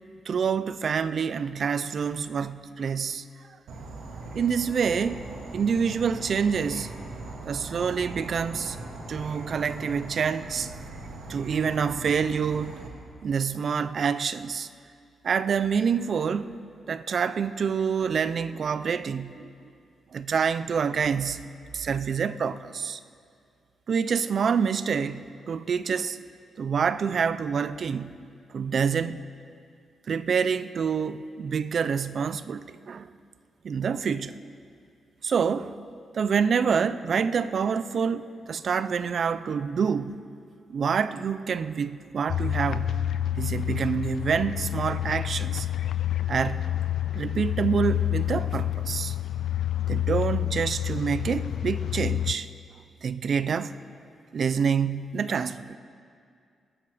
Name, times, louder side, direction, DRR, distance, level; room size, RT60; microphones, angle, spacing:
voice 1, 0.3-3.3 4.3-5.3 5.5-6.9 7.5-8.8 9.1-10.7 11.3-12.8 13.2-14.7 15.2-16.6 16.9-19.5 20.1-21.5 21.7-23.0 23.9-26.2 26.6-28.2 28.5-29.3 30.1-33.2 33.6-34.3 35.2-35.8 36.1-40.2 40.7-43.0 43.4-45.7 46.3-46.7 47.1-49.2 49.9-52.5 53.0-53.7 54.3-55.8, right 6 dB, 50° right, 0.4 m, -27 dB
Insect / Frog, 3.7-12.9, right 2 dB, 85° right, 2.0 m, -40 dB
sound 1, 3.9-10.0, right 1 dB, 25° right, 3.4 m, -50 dB
sound 2, 42.3-52.3, left 11 dB, 70° left, 0.3 m, -28 dB
21.5 x 8.7 x 4.9 m
wide cardioid pair, 150°, 0 cm